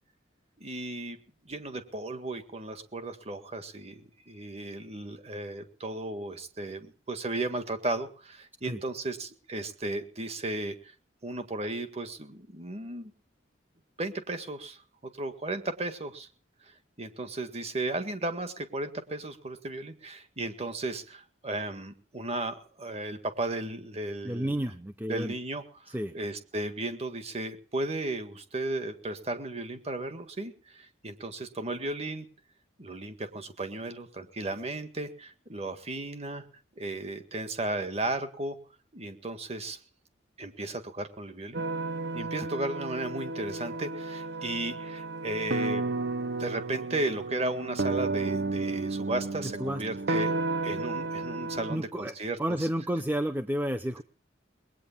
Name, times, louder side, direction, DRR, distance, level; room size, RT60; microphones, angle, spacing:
voice 1, 0.6-1.2 1.4-10.9 11.2-13.1 14.0-14.8 15.2-16.3 16.6-16.7 17.0-24.7 25.1-32.3 32.8-36.5 36.8-38.6 38.9-39.8 40.4-41.6 42.1-45.8 46.4-52.7, right 2 dB, 30° right, 8 dB, 1.8 m, -35 dB
voice 2, 24.2-25.3 25.9-26.1 49.4-49.8 51.7-52.1 52.4-54.0, right 1 dB, 10° right, 9 dB, 0.7 m, -31 dB
sound 1, 41.5-51.8, right 3 dB, 55° right, 0.8 m, -32 dB
20.0 x 9.2 x 7.3 m, 0.42 s
head